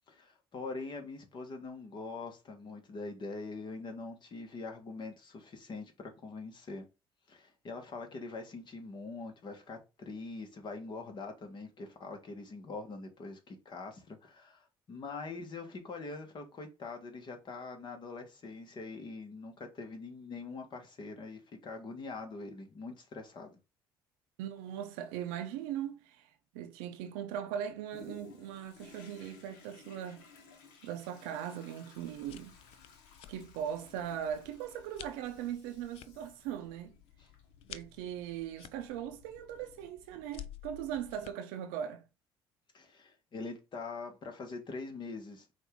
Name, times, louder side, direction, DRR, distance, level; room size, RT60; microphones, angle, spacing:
voice 1, 0.1-6.9 7.3-23.6 37.2-37.3 42.7-45.5, left 3 dB, 45° left, 1.4 m, -43 dB
voice 2, 24.4-26.3 26.5-30.3 30.8-32.6 33.3-36.9 37.7-42.0, right 9 dB, 90° right, 0.6 m, -39 dB
Toilet flush, 27.9-40.3 40.8-40.9, left 4 dB, 85° left, 1.0 m, -58 dB
sound 1, 32.0-41.3, left 13 dB, 65° left, 0.4 m, -53 dB
5.1 x 2.6 x 3.6 m
supercardioid pair, 70°, 10 cm